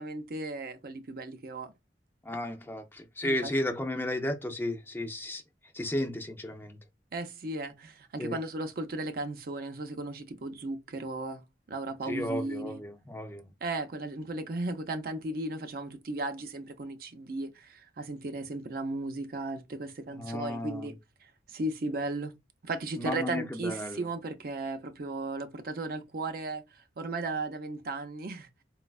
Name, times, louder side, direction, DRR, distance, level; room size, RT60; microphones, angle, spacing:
voice 1, 0.0-1.7 3.2-3.5 7.1-11.4 11.7-12.8 13.6-22.3 22.6-28.5, right 2 dB, 55° right, 0.5 m, -36 dB
voice 2, 2.2-5.4 5.7-6.8 8.2-8.4 12.1-13.5 20.1-20.9 23.0-24.1, left 1 dB, 10° left, 0.4 m, -33 dB
4.0 x 2.2 x 2.2 m
head